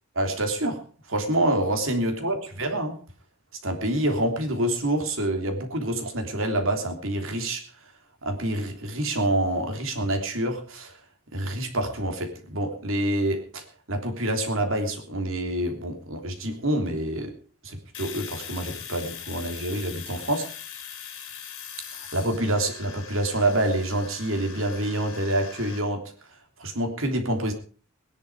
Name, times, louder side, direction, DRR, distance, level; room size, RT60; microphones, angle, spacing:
voice 1, 0.1-0.8 1.1-3.0 3.6-7.6 8.2-11.0 11.3-17.3 17.6-20.5 22.1-26.1 26.6-27.5, right 1 dB, 65° right, 5 dB, 3.3 m, -27 dB
Domestic sounds home sounds, 17.9-25.8, left 8 dB, 75° left, 4.2 m, -41 dB
19.5 x 11.0 x 4.9 m, 0.39 s
head